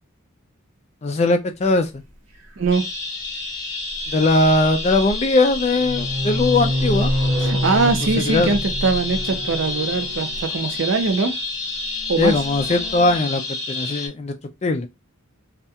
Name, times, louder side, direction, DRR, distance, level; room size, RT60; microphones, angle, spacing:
voice 1, 1.0-1.9 4.1-7.1 8.3-8.6 12.2-13.4 13.7-14.3 14.6-14.9, left 2 dB, 30° left, 0.3 m, -19 dB
sound 1, 2.6-2.7 4.5-5.2 5.5-11.0 11.8-13.2, equal, 80° right, 1.0 m, -27 dB
sound 2, 2.7-14.1, left 3 dB, 85° left, 0.8 m, -29 dB
voice 2, 7.4-11.4 12.1-12.3, right 4 dB, 60° right, 0.5 m, -21 dB
2.4 x 2.2 x 2.7 m
head